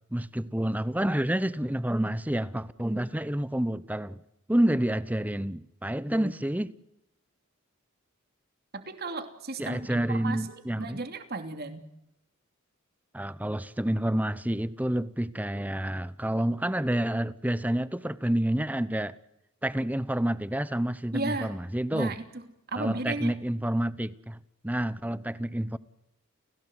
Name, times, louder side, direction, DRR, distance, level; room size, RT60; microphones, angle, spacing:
voice 1, 0.1-4.2 4.5-6.7 9.6-11.0 13.1-19.1 19.6-22.1 22.8-24.4 24.6-25.8, right 1 dB, 10° right, 0.8 m, -29 dB
voice 2, 8.7-10.4 10.8-11.8 21.1-21.6 21.9-22.2 22.7-23.3, right 2 dB, 50° right, 2.9 m, -34 dB
30.0 x 17.0 x 8.0 m
head